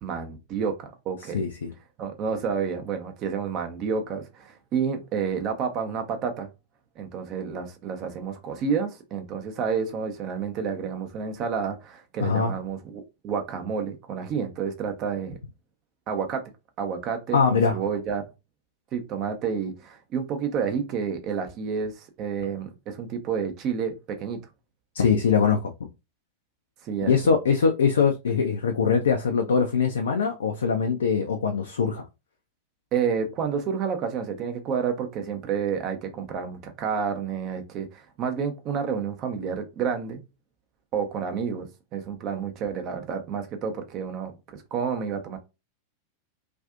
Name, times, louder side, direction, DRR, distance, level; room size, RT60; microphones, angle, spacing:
voice 1, 0.0-1.5 2.0-6.5 7.0-15.4 16.1-16.4 16.8-18.3 18.9-24.4 26.8-27.4 32.9-40.2 40.9-45.4, right 6 dB, 35° right, 0.6 m, -30 dB
voice 2, 12.2-12.5 17.3-17.8 25.0-25.7 27.1-32.0, left 6 dB, 65° left, 0.3 m, -22 dB
2.5 x 2.4 x 2.4 m
figure-of-eight pair, 90°, 0 cm